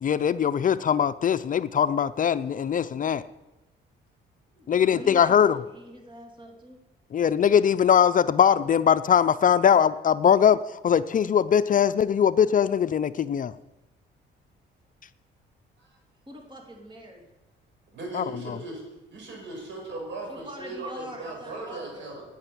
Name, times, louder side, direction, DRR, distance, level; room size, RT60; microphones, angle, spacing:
voice 1, 0.0-3.2 4.7-5.6 7.1-10.6 10.8-13.5 18.1-18.2, left 8 dB, 40° left, 13 dB, 0.5 m, -21 dB
voice 2, 4.5-6.8 16.3-17.3 20.3-22.1, equal, 25° right, 1 dB, 2.9 m, -44 dB
voice 3, 17.9-18.8 19.1-22.2, right 2 dB, 65° right, 0 dB, 6.5 m, -38 dB
10.5 x 9.0 x 9.4 m, 1.0 s
cardioid pair, 90°, 20 cm